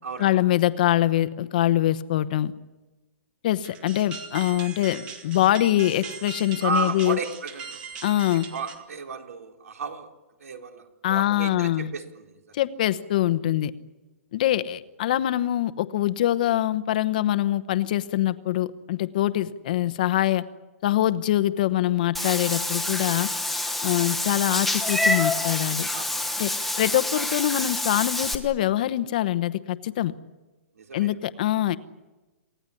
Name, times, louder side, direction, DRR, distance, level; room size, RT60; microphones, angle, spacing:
voice 1, 0.2-2.5 3.4-7.2 8.0-8.5 11.0-11.9 12.5-13.7 14.3-20.4 20.8-23.3 23.8-25.9 26.4-26.5 26.8-30.1 30.9-31.8, left 13 dB, 35° left, 14 dB, 0.9 m, -24 dB
sound 1, 3.6-8.8, right 6 dB, 15° right, 1.7 m, -40 dB
voice 2, 6.6-7.8 8.5-10.1 10.4-12.6 25.9-26.3 30.8-31.1, right 5 dB, 80° right, 4 dB, 4.0 m, -33 dB
Meow / Water / Bathtub (filling or washing), 22.1-28.3, left 2 dB, ahead, 1.1 m, -27 dB
28.5 x 17.0 x 9.9 m, 1.1 s
hypercardioid pair, 175°, 8 cm